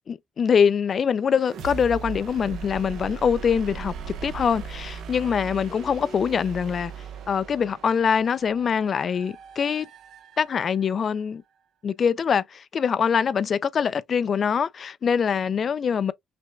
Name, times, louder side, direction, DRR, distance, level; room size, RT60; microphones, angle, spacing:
voice 1, 0.1-3.9 4.2-6.9 7.3-9.9 10.4-11.4 11.8-16.1, left 7 dB, 50° left, 0.4 m, -24 dB
sound 1, 1.3-11.0, right 6 dB, 75° right, 0.9 m, -39 dB
5.9 x 2.2 x 2.4 m
cardioid pair, 90°, 0 cm